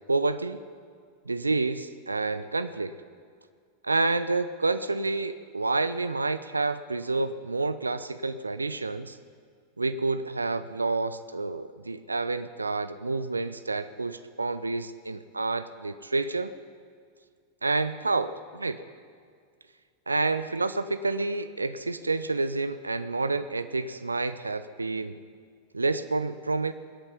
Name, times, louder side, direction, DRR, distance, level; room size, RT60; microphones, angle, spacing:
voice 1, 0.1-0.6 1.3-3.0 3.8-9.2 9.8-16.5 17.6-18.9 20.1-25.2 25.7-26.7, right 3 dB, 80° right, 13 dB, 0.5 m, -29 dB
23.0 x 8.8 x 5.7 m, 2.1 s
figure-of-eight pair, 90°, 0 cm